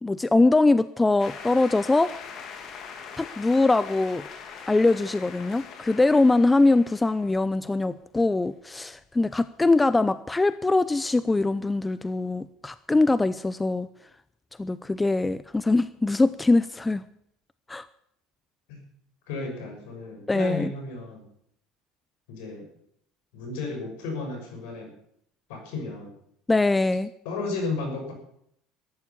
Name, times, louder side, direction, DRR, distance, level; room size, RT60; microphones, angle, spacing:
voice 1, 0.0-2.1 3.2-4.3 4.7-13.9 14.6-17.0 17.7-17.9 20.3-20.7 26.5-27.1, left 2 dB, 15° left, 15 dB, 0.7 m, -22 dB
sound 1, 1.2-8.0, left 6 dB, 50° left, 2.9 m, -42 dB
voice 2, 19.3-21.3 22.3-22.7 23.3-24.9 25.5-26.2 27.2-28.1, left 3 dB, 75° left, 3 dB, 6.4 m, -33 dB
14.0 x 10.5 x 8.6 m, 0.70 s
hypercardioid pair, 80°, 0 cm